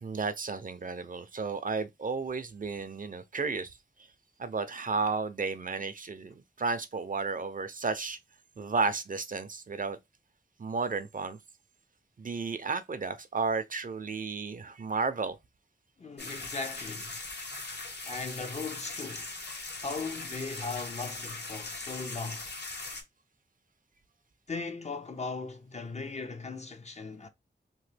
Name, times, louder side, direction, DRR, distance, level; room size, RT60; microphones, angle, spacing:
voice 1, 0.0-3.8 4.4-8.2 8.6-10.0 10.6-11.4 12.2-15.4, right 4 dB, 45° right, 0.4 m, -33 dB
voice 2, 16.0-17.2 18.1-19.3 19.8-22.5 24.5-27.3, left 4 dB, 35° left, 0.5 m, -38 dB
sound 1, 16.2-23.0, left 3 dB, 60° left, 0.8 m, -40 dB
2.9 x 2.1 x 3.2 m
wide cardioid pair, 75°, 19 cm